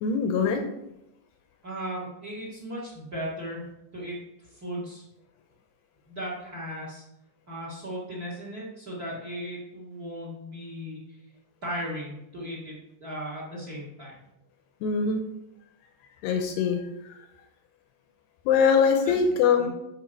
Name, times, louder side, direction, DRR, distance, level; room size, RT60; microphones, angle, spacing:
voice 1, 0.0-0.7 14.8-15.2 16.2-17.1 18.5-19.7, left 6 dB, 85° left, 4 dB, 2.4 m, -23 dB
voice 2, 1.6-3.7 3.9-4.2 4.5-5.0 6.1-7.0 7.5-11.2 11.6-12.7 13.0-14.1 19.0-19.1 19.6-19.7, equal, 80° right, -4 dB, 0.8 m, -36 dB
12.0 x 4.7 x 4.6 m, 0.86 s
omnidirectional pair, 5.4 m